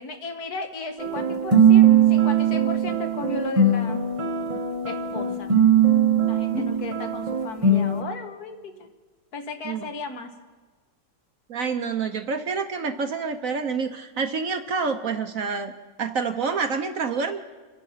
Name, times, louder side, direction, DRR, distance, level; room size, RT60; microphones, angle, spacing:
voice 1, 0.0-4.0 4.9-5.5 6.3-8.9 9.3-10.3, left 3 dB, 55° left, 6 dB, 1.8 m, -35 dB
sound 1, 1.0-8.0, right 6 dB, 25° right, 0.9 m, -20 dB
voice 2, 11.5-15.7 16.0-17.4, right 5 dB, 55° right, 7 dB, 1.1 m, -27 dB
27.5 x 9.2 x 5.7 m, 1.4 s
omnidirectional pair, 2.0 m